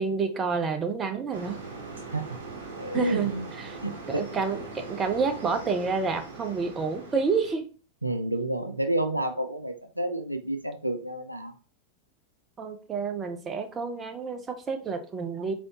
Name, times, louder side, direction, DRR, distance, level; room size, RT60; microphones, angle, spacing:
voice 1, 0.0-1.6 2.9-3.8 4.1-7.6 12.6-15.5, right 5 dB, 20° right, 6 dB, 0.7 m, -29 dB
sound 1, 1.3-7.6, right 3 dB, 65° right, 1.0 m, -41 dB
voice 2, 2.8-3.5 3.8-4.3 8.0-11.5, right 1 dB, 85° right, 8 dB, 0.4 m, -30 dB
4.1 x 3.7 x 2.9 m, 0.36 s
figure-of-eight pair, 90°, 0 cm